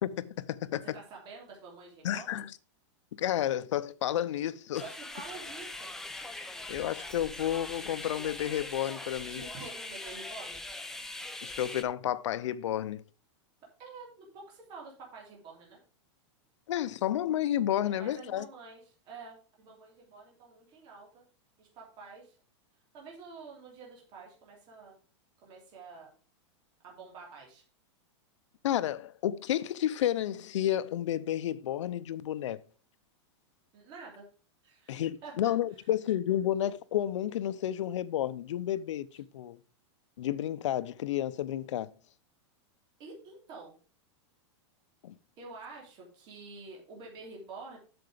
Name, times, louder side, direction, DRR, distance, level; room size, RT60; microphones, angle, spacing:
voice 1, 0.0-0.8 2.0-2.5 3.2-4.8 6.7-9.4 11.4-13.0 16.7-18.5 28.6-32.6 34.9-39.6 40.2-41.9 45.0-45.1, left 11 dB, 80° left, 0.7 m, -31 dB
voice 2, 0.8-2.3 4.8-5.9 9.3-10.6 13.8-15.8 17.8-21.2 21.6-22.3 22.9-25.0 25.4-26.1 26.8-27.6 33.7-34.2 34.6-35.5 43.0-43.8 45.4-47.8, right 4 dB, 30° right, 3.0 m, -48 dB
sound 1, 4.7-11.8, left 2 dB, 5° left, 0.6 m, -42 dB
7.9 x 6.9 x 5.0 m
supercardioid pair, 165°, 15 cm